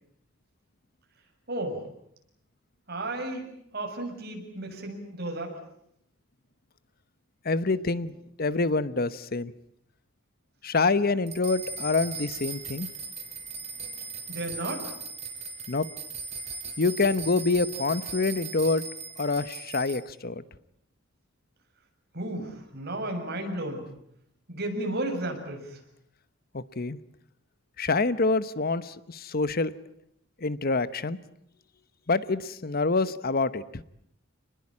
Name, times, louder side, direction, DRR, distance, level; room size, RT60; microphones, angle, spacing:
voice 1, 1.5-1.8 2.9-3.5 3.7-5.6 14.3-14.9 22.1-23.9 24.5-25.8, right 1 dB, 55° right, 3 dB, 7.1 m, -33 dB
voice 2, 7.4-8.1 8.4-9.5 10.6-12.9 15.7-15.9 16.8-18.8 19.2-20.4 26.5-27.0 27.8-29.7 30.4-31.2 32.1-33.8, left 3 dB, 50° left, 15 dB, 1.0 m, -26 dB
sound 1, 11.3-20.0, right 4 dB, 35° right, 4.7 m, -38 dB
29.5 x 21.0 x 8.7 m, 0.76 s
head